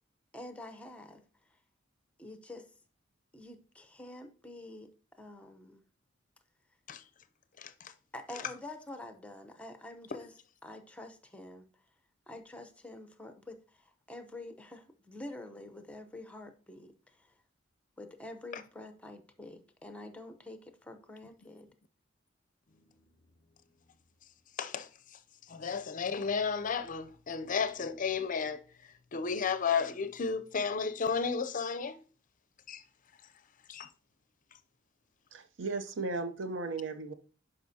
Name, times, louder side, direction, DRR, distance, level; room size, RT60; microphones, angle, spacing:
voice 1, 0.3-1.2 2.2-2.7 3.3-4.9 5.2-5.8 8.1-10.3 10.6-11.6 12.3-16.9 17.2-17.3 18.0-21.7, left 2 dB, 5° left, 0.7 m, -47 dB
voice 2, 25.5-28.6 29.1-32.0 32.7-32.8 33.7-33.9, left 5 dB, 45° left, 0.5 m, -33 dB
voice 3, 35.3-37.1, right 3 dB, 70° right, 0.6 m, -36 dB
11.0 x 5.0 x 2.7 m
head